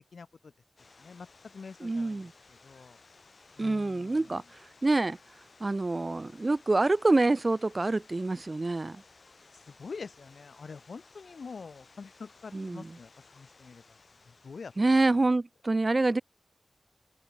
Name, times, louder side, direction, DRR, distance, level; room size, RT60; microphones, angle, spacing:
voice 1, 0.1-0.5 1.0-3.0 3.6-4.4 9.5-14.0 14.3-14.7, left 5 dB, 90° left, 5.6 m, -46 dB
sound 1, 0.8-15.4, left 3 dB, 60° left, 4.5 m, -58 dB
voice 2, 1.8-2.3 3.6-5.2 5.6-9.0 12.5-12.8 14.8-16.2, right 2 dB, 40° right, 1.1 m, -26 dB
wide cardioid pair, 80°, 0 cm